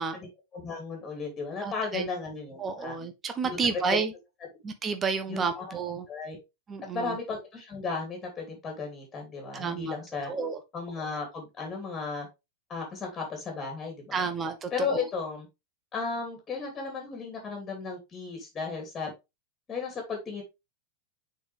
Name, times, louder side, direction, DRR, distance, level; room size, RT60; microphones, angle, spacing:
voice 1, 0.1-3.0 3.4-3.6 3.9-4.0 5.3-5.7 6.1-6.4 6.9-10.3 10.7-12.3 12.7-14.3 14.7-15.5 15.9-19.1 19.7-20.4, left 4 dB, 20° left, 2.5 m, -35 dB
voice 2, 1.6-2.1 2.6-4.1 4.6-6.0 6.7-7.1 9.5-10.0 10.3-10.6 14.1-15.0, right 5 dB, 20° right, 1.1 m, -31 dB
6.7 x 4.6 x 3.4 m
figure-of-eight pair, 90°, 0 cm